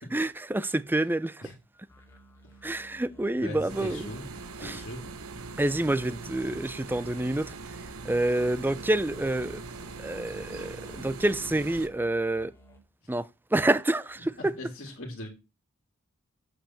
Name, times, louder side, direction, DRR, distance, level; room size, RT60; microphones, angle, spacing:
voice 1, 0.1-1.5 2.6-4.1 4.6-4.8 5.6-7.5 8.0-9.6 10.0-12.5 13.1-14.5, right 1 dB, 10° right, 0.4 m, -28 dB
sound 1, 1.9-12.8, right 2 dB, 15° left, 2.3 m, -54 dB
voice 2, 3.4-4.3 4.6-5.1 13.0-13.1 14.4-15.3, left 1 dB, 50° left, 2.4 m, -39 dB
sound 2, 3.7-11.9, right 4 dB, 65° right, 0.9 m, -42 dB
7.7 x 5.1 x 7.1 m
head